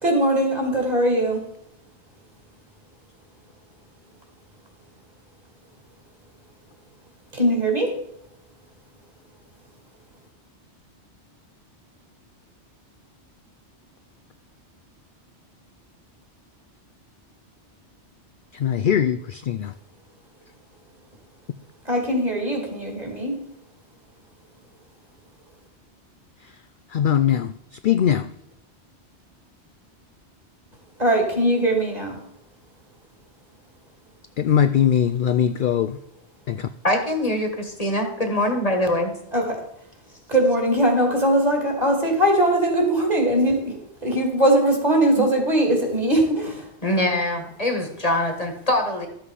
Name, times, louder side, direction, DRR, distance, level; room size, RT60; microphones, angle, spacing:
voice 1, 0.0-1.4 7.3-7.9 21.8-23.4 31.0-32.2 39.3-39.6 40.3-46.7, right 1 dB, 35° right, 1 dB, 2.8 m, -21 dB
voice 2, 18.5-19.7 26.4-26.6 26.9-28.3 34.4-36.0 36.5-36.7, left 9 dB, 60° left, 11 dB, 0.6 m, -21 dB
voice 3, 36.8-39.1 45.2-45.3 46.8-49.1, left 1 dB, 35° left, 4 dB, 1.6 m, -23 dB
13.0 x 7.7 x 4.9 m, 0.77 s
omnidirectional pair, 1.2 m